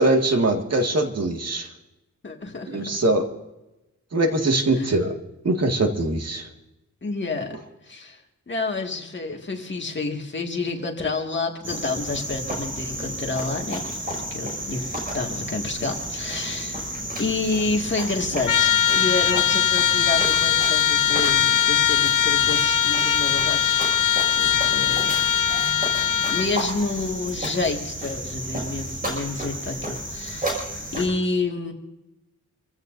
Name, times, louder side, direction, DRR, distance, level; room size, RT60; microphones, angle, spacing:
voice 1, 0.0-1.7 2.7-3.2 4.1-5.1 5.4-6.5, right 2 dB, 55° right, 3 dB, 1.9 m, -22 dB
voice 2, 2.2-2.9 4.7-4.9 7.0-7.6 7.8-8.2 8.5-13.8 14.1-14.8 15.1-16.8 17.2-25.2 25.4-25.8 26.3-30.6 30.9-31.7, left 3 dB, 40° left, 2 dB, 2.0 m, -29 dB
Cricket, 11.6-31.1, right 1 dB, 30° right, 5.6 m, -32 dB
Trumpet, 18.5-26.5, left 9 dB, 85° left, 0.6 m, -21 dB
27.0 x 15.5 x 2.6 m, 0.97 s
wide cardioid pair, 150°, 30 cm